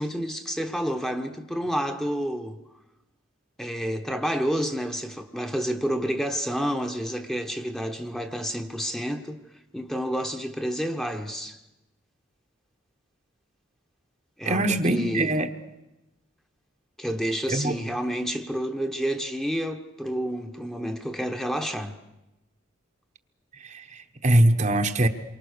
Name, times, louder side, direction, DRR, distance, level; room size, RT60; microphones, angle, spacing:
voice 1, 0.0-2.6 3.6-9.4 9.7-11.6 14.4-15.4 17.0-22.0, equal, ahead, 1.1 m, -29 dB
voice 2, 14.4-15.5 17.5-17.8 23.6-25.1, right 1 dB, 35° right, 1.1 m, -22 dB
27.5 x 24.0 x 6.7 m
head